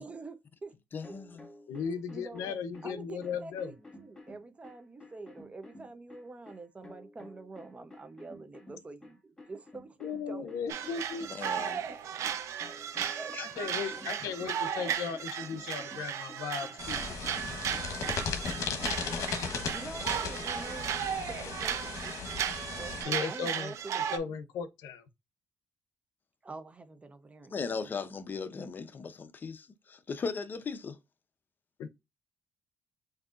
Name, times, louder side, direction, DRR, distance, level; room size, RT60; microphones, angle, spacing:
voice 1, 0.0-0.7 1.1-1.2 2.1-2.6 2.8-10.8 13.1-13.3 19.6-22.4 22.8-24.4 26.4-28.0, right 3 dB, 25° right, 0.7 m, -46 dB
voice 2, 0.9-1.4 11.3-11.8 13.3-13.4 27.5-31.0, left 5 dB, 35° left, 0.6 m, -38 dB
sound 1, 1.0-19.2, left 1 dB, 15° left, 1.1 m, -53 dB
voice 3, 1.7-3.7 10.0-12.1 13.4-17.2 23.0-23.7 24.1-25.1 31.8-31.9, left 6 dB, 90° left, 0.6 m, -37 dB
sound 2, 10.7-24.2, right 9 dB, 70° right, 0.7 m, -35 dB
sound 3, 16.8-23.0, left 5 dB, 70° left, 1.0 m, -36 dB
6.2 x 2.7 x 2.5 m
cardioid pair, 95°, 5 cm